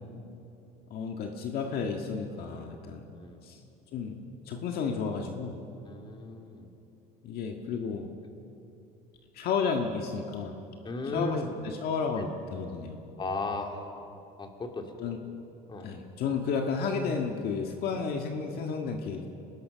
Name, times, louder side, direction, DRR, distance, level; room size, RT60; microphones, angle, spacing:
voice 1, 0.9-3.0 3.4-3.6 3.9-4.2 4.5-5.5 7.2-8.1 9.3-10.5 11.1-13.0 15.0-15.2 15.8-19.3, left 5 dB, 55° left, 3 dB, 1.7 m, -32 dB
voice 2, 5.8-6.7 10.8-11.5 12.2-12.3 13.2-13.8 14.4-15.1 15.7-16.0, left 3 dB, 25° left, 3 dB, 2.7 m, -36 dB
25.0 x 19.5 x 5.8 m, 3.0 s
cardioid pair, 120°, 19 cm